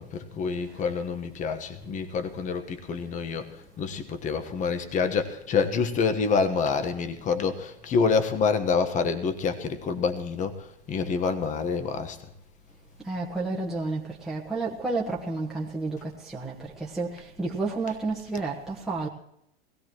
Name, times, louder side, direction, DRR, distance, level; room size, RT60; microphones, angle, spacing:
voice 1, 0.0-12.3, left 5 dB, 25° left, 1.3 m, -27 dB
voice 2, 13.0-19.1, right 3 dB, ahead, 1.4 m, -31 dB
20.5 x 16.0 x 3.1 m
hypercardioid pair, 130°, 32 cm